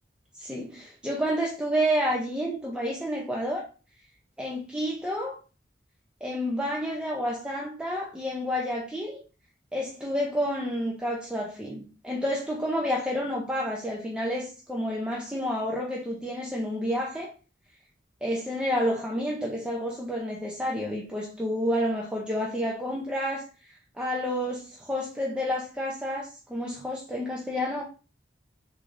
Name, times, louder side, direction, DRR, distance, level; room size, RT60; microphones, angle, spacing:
voice 1, 0.4-3.6 4.4-5.4 6.2-9.2 9.7-17.3 18.2-27.8, equal, 5° right, 0.5 m, -30 dB
3.7 x 3.3 x 2.5 m
head